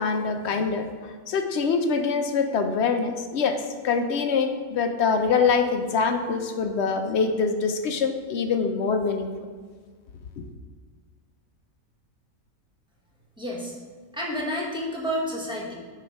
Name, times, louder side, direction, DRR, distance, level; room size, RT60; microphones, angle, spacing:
voice 1, 0.0-9.3, left 5 dB, 60° left, 6 dB, 0.7 m, -24 dB
voice 2, 13.4-13.7 14.1-15.7, equal, 5° right, -4 dB, 1.1 m, -30 dB
8.4 x 3.3 x 5.2 m, 1.5 s
omnidirectional pair, 1.5 m